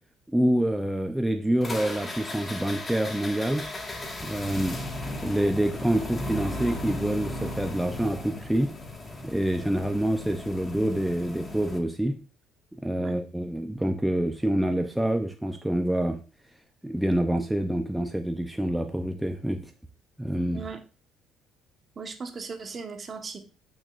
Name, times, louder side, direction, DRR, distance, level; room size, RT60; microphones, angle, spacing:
voice 1, 0.3-3.6 4.2-4.8 5.2-8.7 9.2-12.2 12.8-16.2 16.8-19.6 20.2-20.6, right 1 dB, 5° right, 5 dB, 0.7 m, -26 dB
sound 1, 1.6-11.8, left 1 dB, 25° left, 1.8 m, -36 dB
voice 2, 22.0-23.4, right 5 dB, 40° right, 5 dB, 1.4 m, -37 dB
8.7 x 6.3 x 2.6 m, 0.34 s
supercardioid pair, 85°, 0 cm